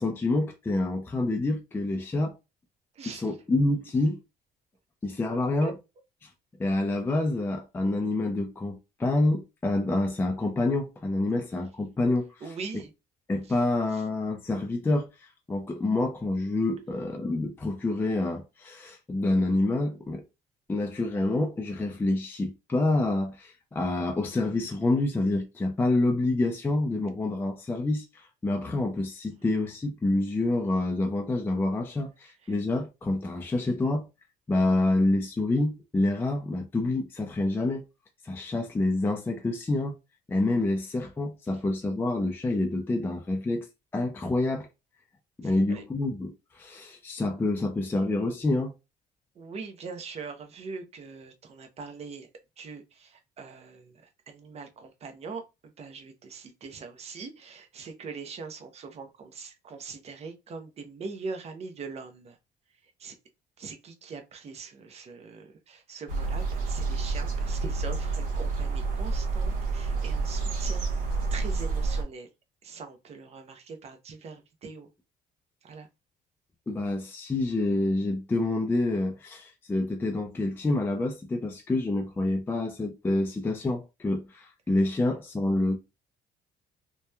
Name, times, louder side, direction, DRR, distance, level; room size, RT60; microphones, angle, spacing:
voice 1, 0.0-2.4 3.1-4.2 5.0-5.7 6.2-6.3 6.6-12.4 13.3-20.3 20.7-34.1 34.5-37.8 38.2-39.9 40.3-43.7 43.9-44.7 45.4-48.7 76.7-85.8, left 2 dB, 15° left, 0.3 m, -27 dB
voice 2, 2.9-3.4 5.3-5.7 12.4-12.9 13.5-13.6 13.9-14.0 32.4-32.5 45.4-45.8 49.3-52.3 52.6-62.4 62.8-63.1 63.6-70.9 71.3-72.3 72.6-74.9 75.6-75.9, right 4 dB, 40° right, 0.6 m, -42 dB
sound 1, 66.1-72.0, right 4 dB, 55° right, 1.0 m, -29 dB
2.8 x 2.2 x 2.3 m
cardioid pair, 110°, 17 cm